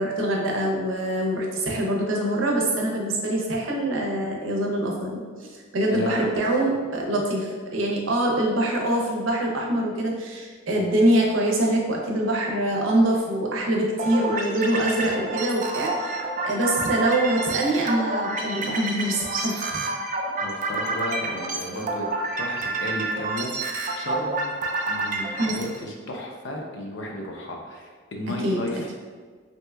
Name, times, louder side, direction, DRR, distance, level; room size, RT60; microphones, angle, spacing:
voice 1, 0.0-19.8 25.4-25.6 28.4-28.6, right 1 dB, 80° right, -1 dB, 0.6 m, -24 dB
voice 2, 5.9-6.3 10.7-10.9 20.4-22.1 22.4-24.5 24.9-28.9, left 1 dB, 65° left, 1 dB, 0.5 m, -33 dB
sound 1, 14.0-25.8, right 2 dB, 40° right, 0.4 m, -29 dB
3.3 x 2.8 x 2.2 m, 1.5 s
head